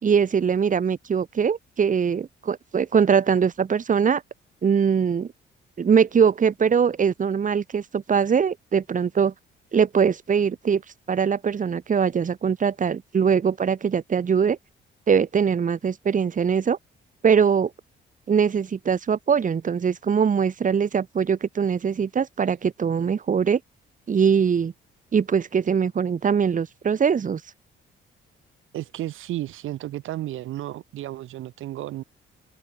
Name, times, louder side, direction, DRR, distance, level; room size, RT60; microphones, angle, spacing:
voice 1, 0.0-4.2 4.6-5.3 5.8-9.3 9.7-10.8 11.1-14.6 15.1-16.8 17.2-17.7 18.3-23.6 24.1-24.7 25.1-27.4, right 6 dB, 40° right, 1.8 m, -22 dB
voice 2, 28.7-32.0, right 14 dB, 85° right, 7.1 m, -33 dB
open air
cardioid pair, 90°, 20 cm